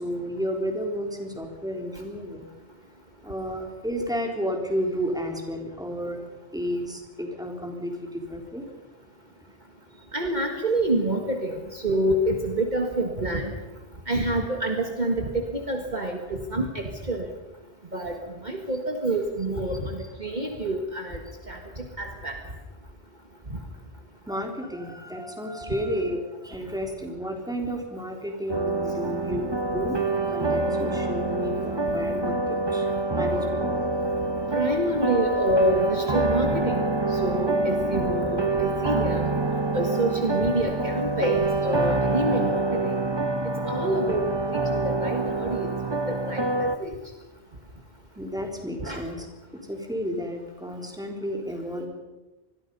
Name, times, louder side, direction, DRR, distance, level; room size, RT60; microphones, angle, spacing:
voice 1, 0.0-2.5 3.2-6.3 6.5-8.7 9.9-10.1 24.3-30.0 30.3-33.7 34.5-34.6 48.2-49.3 49.5-51.9, equal, 5° right, 2 dB, 3.5 m, -32 dB
voice 2, 10.1-13.5 14.1-17.3 17.9-21.2 21.5-22.4 34.5-39.3 39.7-43.0 43.7-44.3 44.5-45.7 46.1-47.0 48.8-49.0, right 1 dB, 40° right, 3 dB, 2.0 m, -27 dB
sound 1, 28.5-46.8, right 2 dB, 25° right, 1.2 m, -26 dB
26.5 x 21.0 x 5.5 m, 1.1 s
omnidirectional pair, 1.1 m